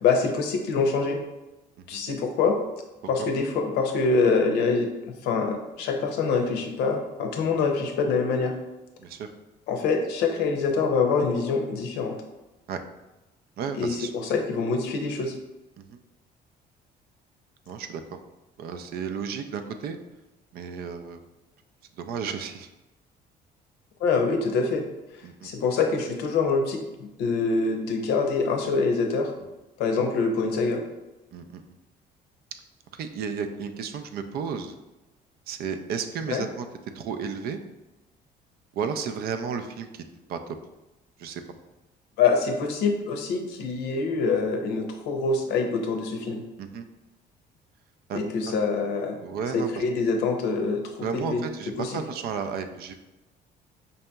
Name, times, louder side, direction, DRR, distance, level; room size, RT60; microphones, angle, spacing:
voice 1, 0.0-1.2 1.9-2.6 3.1-4.9 5.2-8.5 9.7-12.2 13.8-15.3 24.0-24.9 25.4-29.3 29.8-30.9 36.3-36.4 42.2-46.4 48.1-49.2 49.5-50.8 51.1-51.4 51.8-52.0, left 4 dB, 85° left, 4 dB, 0.6 m, -25 dB
voice 2, 9.0-9.3 12.7-12.8 13.6-14.1 15.8-16.0 17.7-18.0 18.6-20.0 20.5-21.2 22.0-22.7 25.2-25.5 31.3-31.6 32.9-34.8 35.5-36.7 36.9-37.6 38.7-40.0 40.3-40.6 41.2-41.4 46.6-46.9 48.1-48.2 48.5-48.6 49.2-49.8 51.0-52.9, right 6 dB, 65° right, 8 dB, 0.4 m, -33 dB
5.3 x 2.8 x 2.3 m, 1.0 s
cardioid pair, 110°, 17 cm